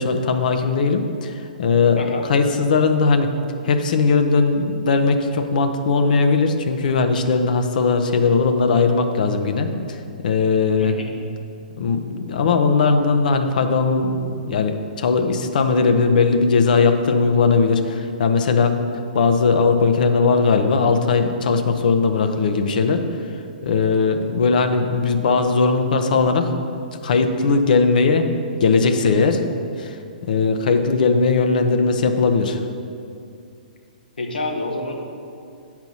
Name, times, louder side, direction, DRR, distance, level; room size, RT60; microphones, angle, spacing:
voice 1, 0.0-2.0 2.3-3.3 3.6-10.0 10.2-11.0 11.8-18.7 19.1-23.0 23.6-26.5 27.0-28.2 28.6-29.4 29.8-30.0 30.2-32.6, left 4 dB, 60° left, 7 dB, 0.7 m, -19 dB
voice 2, 10.8-11.1 34.2-34.9, left 2 dB, 80° left, 1 dB, 1.2 m, -28 dB
7.9 x 4.5 x 5.5 m, 2.5 s
hypercardioid pair, 125°, 5 cm